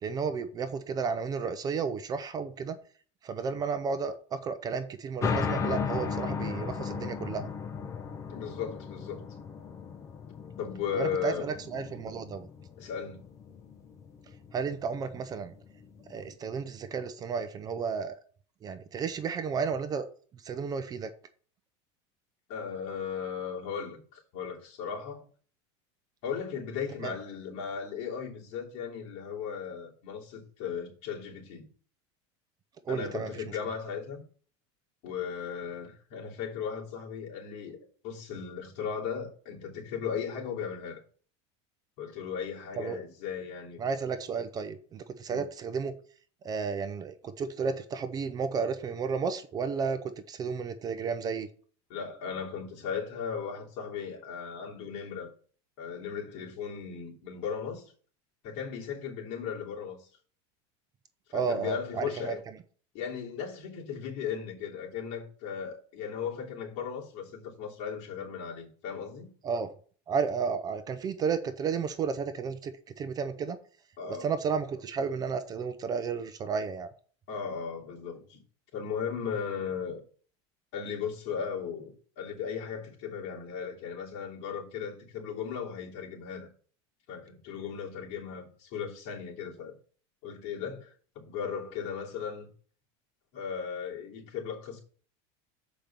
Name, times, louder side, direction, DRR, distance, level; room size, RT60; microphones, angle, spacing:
voice 1, 0.0-2.8 3.2-7.5 10.9-12.5 14.5-15.5 16.1-18.1 18.6-20.1 20.3-21.1 27.0-27.2 32.8-33.4 42.8-43.0 43.8-45.9 46.4-51.5 61.3-62.4 69.4-69.7 70.1-73.6 74.2-76.9, right 5 dB, 25° right, 0.6 m, -32 dB
sound 1, 5.2-16.3, left 5 dB, 20° left, 0.8 m, -36 dB
voice 2, 8.3-9.4 10.6-11.5 12.8-13.2 22.5-25.2 26.2-31.7 32.9-34.2 35.0-41.0 42.0-43.8 45.3-45.4 51.9-55.3 55.8-57.9 58.4-60.1 61.3-62.4 62.9-69.3 74.0-74.3 77.3-78.4 78.7-80.0 80.7-86.5 87.1-89.7 90.2-90.9 91.2-92.5 93.3-94.8, left 7 dB, 55° left, 3.0 m, -36 dB
7.0 x 5.2 x 6.0 m
supercardioid pair, 155°, 15 cm